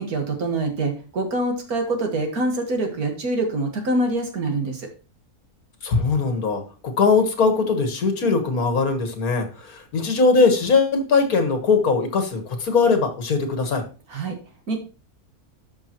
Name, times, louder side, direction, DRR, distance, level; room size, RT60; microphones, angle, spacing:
voice 1, 0.0-4.9 14.1-14.4 14.7-14.8, right 2 dB, 75° right, 3 dB, 2.2 m, -25 dB
voice 2, 5.8-13.8, left 4 dB, 70° left, 6 dB, 2.0 m, -20 dB
12.5 x 5.6 x 3.0 m, 0.35 s
omnidirectional pair, 1.6 m